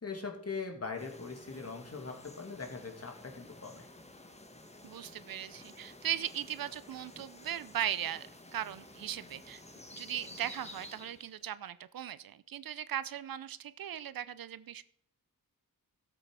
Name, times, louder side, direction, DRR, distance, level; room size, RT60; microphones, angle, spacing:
voice 1, 0.0-3.9, left 4 dB, 40° left, 2 dB, 2.5 m, -41 dB
sound 1, 1.0-11.4, left 1 dB, 20° left, 1.5 m, -52 dB
voice 2, 4.8-8.3 8.5-9.6 9.9-14.8, right 10 dB, 70° right, 16 dB, 0.6 m, -38 dB
13.0 x 7.7 x 4.8 m, 0.71 s
cardioid pair, 65°, 36 cm